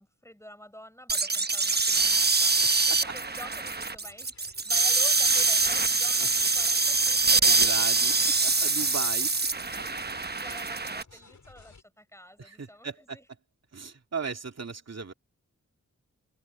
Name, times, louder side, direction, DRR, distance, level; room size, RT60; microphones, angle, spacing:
voice 1, 0.0-8.2 10.4-13.3, equal, 10° left, 5.3 m, -49 dB
sound 1, 1.1-11.0, right 3 dB, 30° right, 1.1 m, -24 dB
sound 2, 4.0-11.8, left 4 dB, 65° left, 6.7 m, -57 dB
voice 2, 7.5-8.1 8.4-9.3 12.4-13.2 13.7-15.1, right 4 dB, 55° right, 2.8 m, -36 dB
open air
cardioid pair, 45°, 31 cm